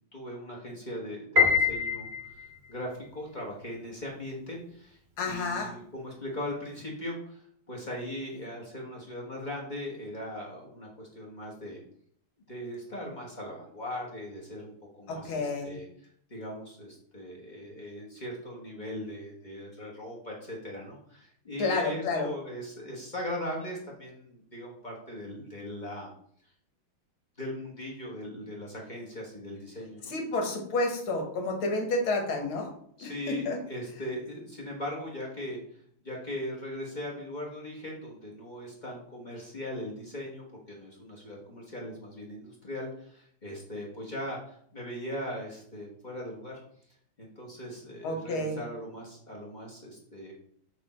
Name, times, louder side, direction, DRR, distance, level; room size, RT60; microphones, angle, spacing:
voice 1, 0.1-5.0 5.2-11.8 12.5-26.1 27.4-30.1 33.0-46.6 47.2-50.4, left 1 dB, 25° left, -3 dB, 1.1 m, -39 dB
Piano, 1.4-2.7, left 6 dB, 45° right, 0.8 m, -25 dB
voice 2, 5.2-5.7 15.1-15.8 21.6-22.3 30.1-32.7 33.0-33.1 33.5-33.6 48.0-48.6, left 2 dB, 75° left, 3 dB, 1.9 m, -30 dB
6.4 x 3.4 x 4.3 m, 0.63 s
omnidirectional pair, 2.3 m